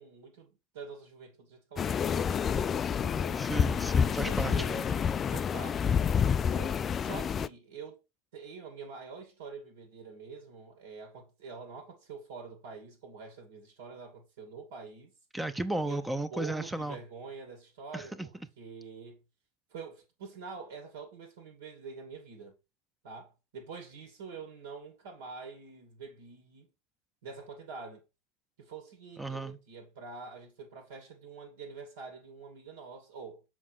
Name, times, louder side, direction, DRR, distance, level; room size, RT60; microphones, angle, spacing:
voice 1, 0.0-3.5 4.2-5.9 6.5-8.0 8.3-15.1 15.8-19.2 19.7-22.5 23.0-26.7 27.2-28.0 28.6-33.4, right 5 dB, 70° right, 2.3 m, -46 dB
sound 1, 1.8-7.5, left 7 dB, 30° left, 0.4 m, -28 dB
voice 2, 3.3-4.8 15.3-17.0 17.9-18.3 29.2-29.6, right 2 dB, 5° right, 0.7 m, -34 dB
7.2 x 4.9 x 4.6 m
hypercardioid pair, 85°, 0 cm